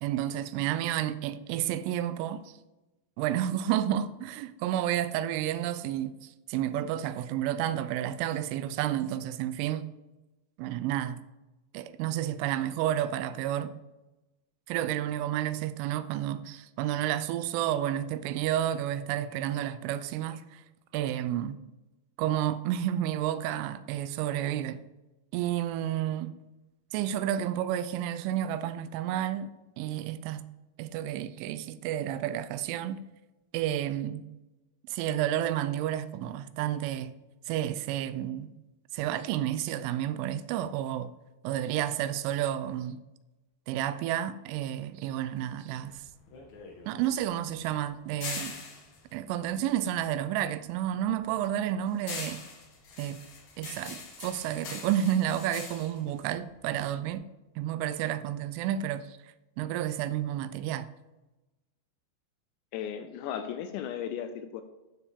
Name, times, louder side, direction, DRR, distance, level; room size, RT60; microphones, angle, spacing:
voice 1, 0.0-2.5 3.2-9.9 10.6-11.2 11.7-13.8 14.7-20.6 20.9-21.6 22.2-24.8 25.3-26.3 26.9-30.4 30.8-33.0 33.5-34.3 34.9-37.1 37.5-38.5 38.9-41.1 41.4-43.0 43.7-46.0 46.9-48.6 49.1-52.4 53.0-53.2 53.6-57.3 57.6-59.2 59.6-60.9, right 11 dB, 90° right, 3.0 m, -31 dB
sound 1, 45.8-50.4 50.7-57.1, left 4 dB, 65° left, 1.8 m, -43 dB
voice 2, 62.7-64.6, left 9 dB, 85° left, 2.7 m, -36 dB
12.0 x 6.8 x 3.6 m
omnidirectional pair, 5.5 m